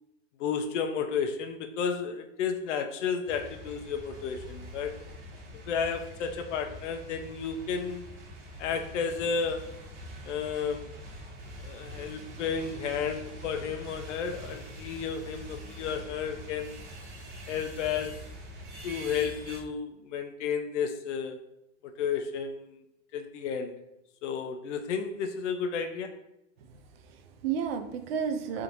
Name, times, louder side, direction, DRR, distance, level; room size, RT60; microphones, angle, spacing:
voice 1, 0.4-4.9 5.7-8.1 8.6-9.8 10.2-10.9 11.6-16.7 17.5-18.3 18.8-21.4 21.8-22.8 23.1-23.8 24.2-26.2, left 6 dB, 85° left, 7 dB, 0.6 m, -32 dB
sound 1, 3.3-19.6, equal, 75° right, 1.5 m, -44 dB
voice 2, 26.6-28.6, right 7 dB, 55° right, 6 dB, 0.6 m, -33 dB
3.6 x 2.6 x 4.4 m, 0.84 s
supercardioid pair, 170°, 35 cm